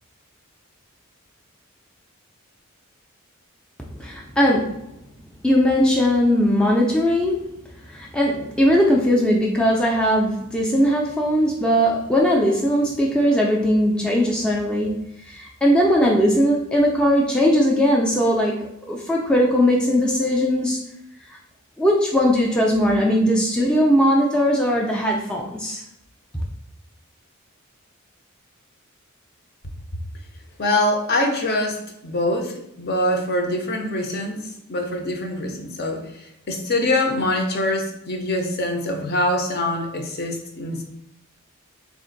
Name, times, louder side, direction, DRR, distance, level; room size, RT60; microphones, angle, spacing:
voice 1, 4.0-4.8 5.4-7.4 7.9-20.8 21.3-21.4 21.8-25.8, equal, 5° left, -3 dB, 0.4 m, -19 dB
voice 2, 30.6-34.4 34.7-40.8, left 1 dB, 50° left, 3 dB, 0.6 m, -24 dB
3.6 x 2.5 x 3.8 m, 0.80 s
head